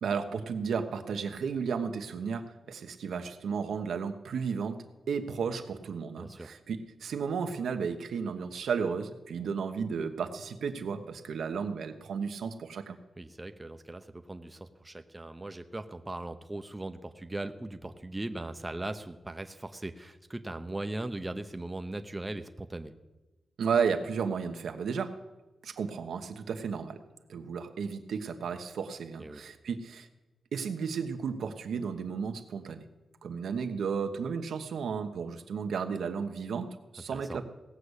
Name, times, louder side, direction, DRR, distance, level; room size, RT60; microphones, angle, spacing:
voice 1, 0.0-13.0 23.6-25.1 25.6-27.0 27.3-30.1 30.5-32.8 33.2-37.4, right 6 dB, 80° right, 7 dB, 1.1 m, -33 dB
voice 2, 6.2-6.5 13.2-22.9 29.2-29.4 37.1-37.4, right 2 dB, 15° right, 8 dB, 0.7 m, -39 dB
17.5 x 6.8 x 8.1 m, 1.1 s
wide cardioid pair, 130°, 0 cm